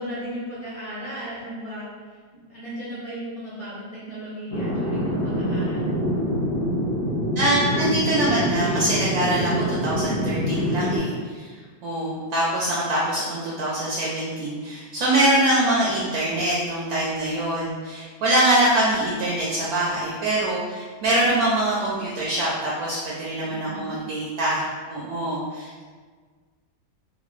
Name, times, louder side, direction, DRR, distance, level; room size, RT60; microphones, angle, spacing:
voice 1, 0.0-1.8 2.3-6.2 23.4-23.9, right 1 dB, 50° right, -12 dB, 0.4 m, -35 dB
sound 1, 4.5-11.0, equal, 60° left, 0.4 m, -25 dB
voice 2, 7.4-11.5 11.8-25.8, right 1 dB, 70° right, -6 dB, 1.0 m, -24 dB
3.0 x 2.4 x 3.0 m, 1.5 s
omnidirectional pair, 1.8 m